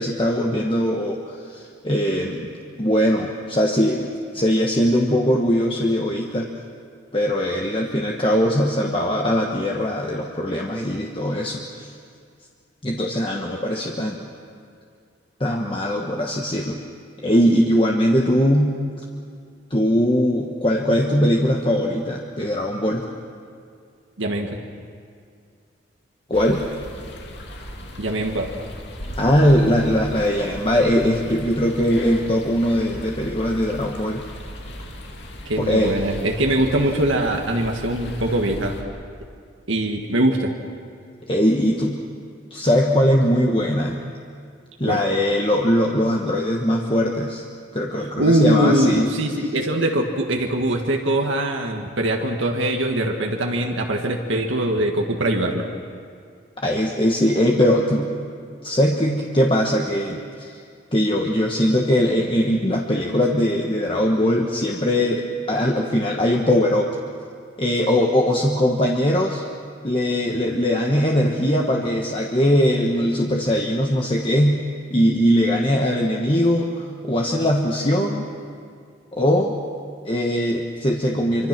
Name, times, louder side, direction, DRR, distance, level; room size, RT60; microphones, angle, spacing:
voice 1, 0.0-2.5 2.8-6.5 7.1-11.9 12.8-14.3 15.4-16.8 17.2-18.7 19.7-23.0 26.3-26.6 29.2-34.2 35.6-36.0 41.3-42.0 42.5-44.0 44.8-47.4 47.7-49.1 56.6-58.1 58.6-60.6 60.9-66.9 67.6-69.4 69.8-74.6 74.9-78.2 79.1-79.5 80.0-81.5, equal, 25° left, 0 dB, 1.3 m, -20 dB
voice 2, 24.2-24.6 28.0-28.5 35.4-38.7 39.7-40.5 44.8-45.0 48.2-55.7, right 1 dB, 75° right, 2 dB, 1.7 m, -22 dB
sound 1, 26.3-38.8, equal, 60° left, 2.6 m, -36 dB
25.5 x 24.5 x 6.1 m, 2.2 s
head